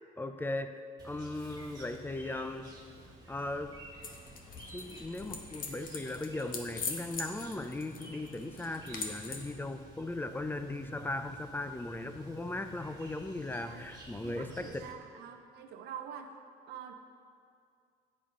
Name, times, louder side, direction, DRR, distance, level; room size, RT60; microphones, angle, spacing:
voice 1, 0.2-2.7 3.3-3.8 4.7-14.9, left 2 dB, 10° left, 8 dB, 0.6 m, -38 dB
Chirp tweet, 1.0-14.9, right 1 dB, 20° right, 1.9 m, -52 dB
sound 1, 4.0-9.5, left 4 dB, 55° left, 1.4 m, -43 dB
voice 2, 14.2-16.3 16.7-16.9, right 8 dB, 75° right, 6 dB, 0.8 m, -45 dB
12.5 x 8.9 x 3.8 m, 2.3 s
cardioid pair, 110°, 17 cm